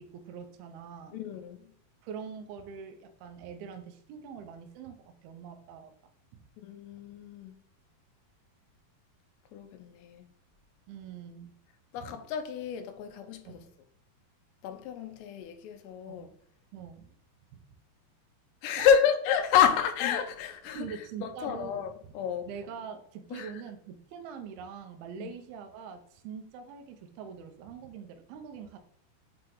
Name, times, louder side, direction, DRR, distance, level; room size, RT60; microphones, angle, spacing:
voice 1, 0.0-1.2 2.0-6.1 10.9-11.6 12.0-12.1 13.5-13.7 16.1-16.3 16.7-17.1 17.5-17.6 18.7-18.9 20.7-21.7 22.5-28.8, right 6 dB, 80° right, 2.3 m, -43 dB
voice 2, 1.1-1.7 6.6-7.6 9.5-10.3 11.9-13.6 14.6-16.3 18.6-22.5 23.3-23.6 25.2-25.3, left 8 dB, 80° left, 2.7 m, -29 dB
7.8 x 3.3 x 3.8 m
omnidirectional pair, 5.2 m